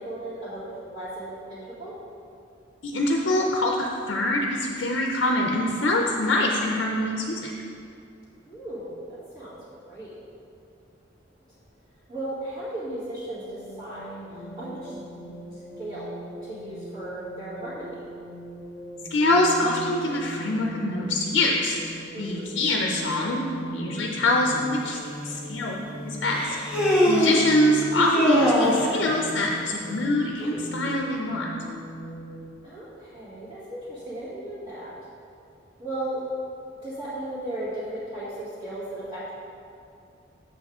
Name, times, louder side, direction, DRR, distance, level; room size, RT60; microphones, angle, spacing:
voice 1, 0.0-1.9 6.1-6.3 8.5-9.5 9.8-10.2 12.1-14.9 15.8-16.1 16.4-18.1 22.1-22.5 28.2-28.4 30.4-30.7 32.6-34.9 35.8-36.2 36.8-39.3, right 1 dB, 30° right, -14 dB, 1.8 m, -36 dB
voice 2, 2.8-7.5 19.1-23.4 23.7-25.0 25.2-31.5, left 1 dB, 65° left, 0 dB, 0.6 m, -24 dB
sound 1, 13.3-32.5, right 1 dB, 10° left, 1.4 m, -40 dB
Human voice, 24.9-25.0 26.3-27.5 27.9-29.0, equal, 5° right, 1.4 m, -22 dB
7.8 x 6.5 x 3.6 m, 2.5 s
head